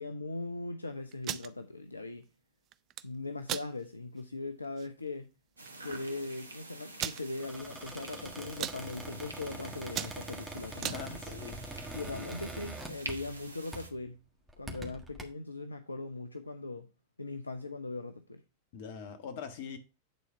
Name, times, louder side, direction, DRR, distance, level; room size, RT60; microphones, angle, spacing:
voice 1, 0.0-2.3 3.0-5.3 5.8-11.3 11.9-14.2 14.6-16.9 17.2-18.4, left 2 dB, 80° left, 0.7 m, -40 dB
sound 1, 1.1-1.5 2.7-3.0 3.4-3.7 4.2-4.3 4.6-4.9 5.7-5.8 5.9-6.0 7.0-7.2 7.8-8.2 8.4-8.8 9.3-9.5 9.8-11.0, right 12 dB, 35° right, 0.5 m, -36 dB
sound 2, 5.6-13.9, right 2 dB, 80° right, 1.1 m, -47 dB
Squeak, 7.4-13.4 13.7-14.0 14.5-15.2, right 1 dB, 5° right, 1.6 m, -44 dB
voice 2, 10.8-11.7 18.7-19.8, left 6 dB, 50° left, 1.6 m, -42 dB
9.1 x 4.3 x 5.6 m
figure-of-eight pair, 90°, 0 cm